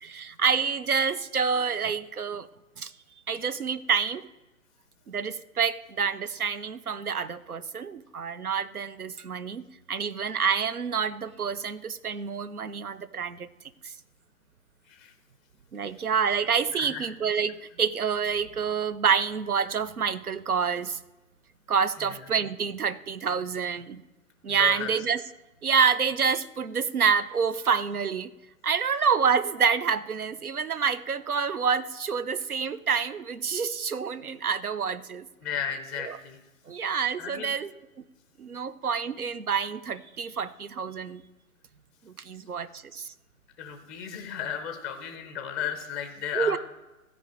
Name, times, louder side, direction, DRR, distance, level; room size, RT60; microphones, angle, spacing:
voice 1, 0.0-2.5 2.8-2.9 3.3-4.2 5.1-9.6 9.9-13.5 15.7-21.0 21.7-24.0 24.4-25.2 25.6-28.3 28.6-35.3 36.0-36.2 36.7-37.7 38.4-41.2 42.2-43.1 46.3-46.6, right 6 dB, 90° right, 17 dB, 0.8 m, -27 dB
voice 2, 16.8-17.1 22.1-22.2 24.5-24.9 35.4-36.4 37.2-37.5 43.6-46.6, left 8 dB, ahead, 6 dB, 0.4 m, -34 dB
13.5 x 5.3 x 8.5 m, 1.1 s
figure-of-eight pair, 125°, 43 cm